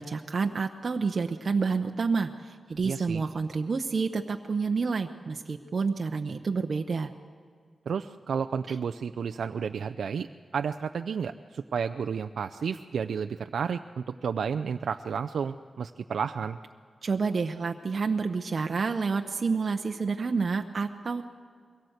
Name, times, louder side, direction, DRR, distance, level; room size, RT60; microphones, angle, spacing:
voice 1, 0.0-7.1 8.7-8.8 17.0-21.2, right 4 dB, 50° right, 4 dB, 0.8 m, -29 dB
voice 2, 2.8-3.2 7.9-10.3 10.5-16.6, right 6 dB, 90° right, 8 dB, 0.5 m, -31 dB
22.5 x 17.5 x 8.0 m, 2.2 s
wide cardioid pair, 110°, 0 cm